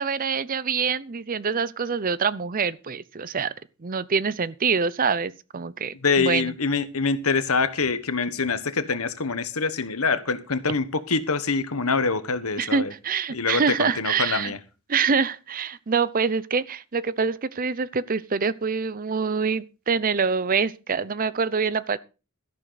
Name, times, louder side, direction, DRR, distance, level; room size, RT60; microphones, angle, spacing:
voice 1, 0.0-3.5 3.8-6.5 12.6-14.5 14.9-22.0, right 5 dB, 40° right, 0.6 m, -25 dB
voice 2, 6.0-12.9 13.3-14.6, left 4 dB, 70° left, 1.3 m, -25 dB
13.5 x 11.5 x 4.0 m
head